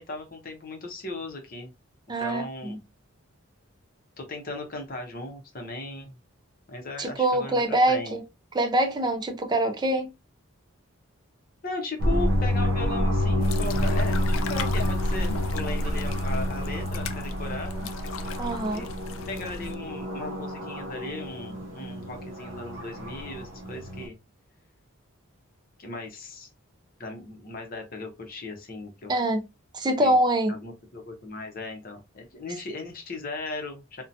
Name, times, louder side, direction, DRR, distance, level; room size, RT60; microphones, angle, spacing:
voice 1, 0.0-1.7 2.2-2.8 4.2-6.2 6.7-8.2 11.6-14.2 14.5-17.9 18.7-18.9 19.3-24.2 25.8-26.5 27.0-29.1 30.0-30.1 30.5-34.0, left 2 dB, 40° left, 0.7 m, -37 dB
voice 2, 2.1-2.8 7.0-8.2 8.5-10.1 18.4-18.8 29.1-29.4 29.7-30.6, right 1 dB, 20° right, 0.4 m, -24 dB
sound 1, 12.0-24.1, left 1 dB, 55° right, 0.7 m, -29 dB
sound 2, 13.4-19.7, left 1 dB, 65° left, 0.3 m, -31 dB
2.7 x 2.1 x 2.6 m
head